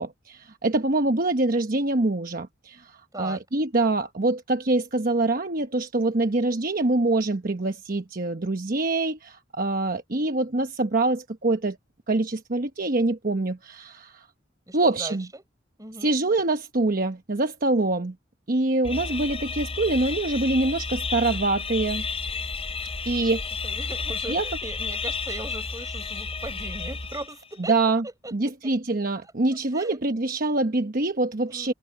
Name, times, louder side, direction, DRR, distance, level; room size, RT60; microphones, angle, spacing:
voice 1, 0.0-11.8 12.1-14.3 14.7-15.3 16.0-18.1 18.5-22.0 23.1-23.4 24.3-24.4 27.7-28.0 28.3-31.7, right 2 dB, 50° right, 1.1 m, -25 dB
voice 2, 3.1-3.4 14.7-15.4 15.8-16.1 23.2-23.3 23.6-27.7 28.0-28.3 28.6-28.7 29.7-30.0 31.4-31.7, right 2 dB, 20° right, 6.6 m, -38 dB
sound 1, 18.8-27.5, left 4 dB, 30° left, 5.0 m, -32 dB
head